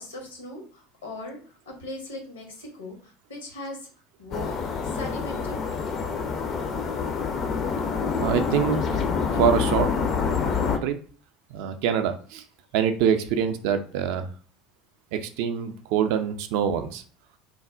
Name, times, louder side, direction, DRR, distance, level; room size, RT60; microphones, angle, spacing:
voice 1, 0.0-1.4 1.7-3.9 4.2-5.6, left 1 dB, 75° left, 1 dB, 0.8 m, -39 dB
sound 1, 4.3-10.8, left 5 dB, 40° left, 0.4 m, -27 dB
voice 2, 8.2-9.0 9.3-9.9 10.8-11.0 11.5-12.4 12.7-14.3 15.1-17.0, right 8 dB, 55° right, 9 dB, 0.3 m, -25 dB
3.2 x 2.0 x 2.4 m, 0.42 s
figure-of-eight pair, 70°, 0 cm